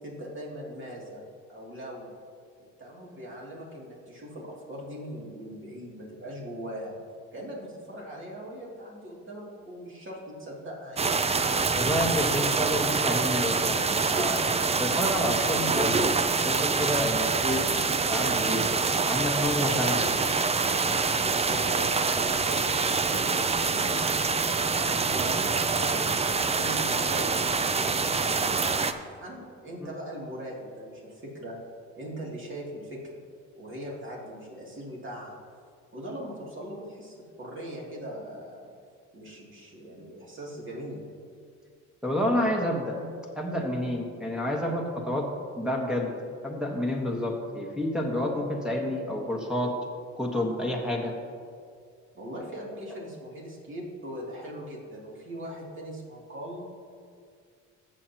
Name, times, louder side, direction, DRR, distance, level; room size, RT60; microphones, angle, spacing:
voice 1, 0.0-1.2 1.5-2.1 2.8-7.0 7.3-11.2 21.2-31.5 32.0-33.2 33.5-35.4 35.9-38.7 39.1-41.0 52.1-56.6, equal, 40° right, -3 dB, 2.7 m, -40 dB
sound 1, 11.0-28.9, right 4 dB, 20° right, 0.5 m, -26 dB
voice 2, 11.7-14.5 14.8-16.0 16.4-18.7 19.1-20.3 42.0-43.0 43.3-45.3 45.6-46.1 46.4-49.7 50.2-51.1, left 1 dB, ahead, -2 dB, 1.3 m, -29 dB
15.0 x 7.5 x 2.9 m, 2.2 s
cardioid pair, 90°, 30 cm